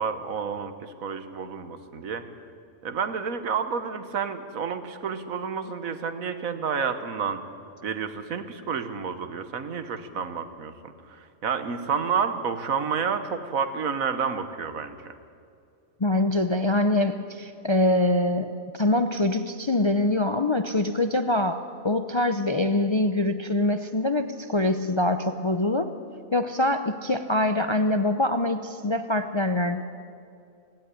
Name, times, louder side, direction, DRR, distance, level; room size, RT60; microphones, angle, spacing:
voice 1, 0.0-2.3 2.8-7.4 7.8-15.1, right 6 dB, 85° right, 10 dB, 1.6 m, -30 dB
voice 2, 16.0-25.9 26.3-29.8, left 1 dB, 35° left, 8 dB, 0.4 m, -24 dB
16.5 x 16.0 x 10.0 m, 2.3 s
omnidirectional pair, 1.4 m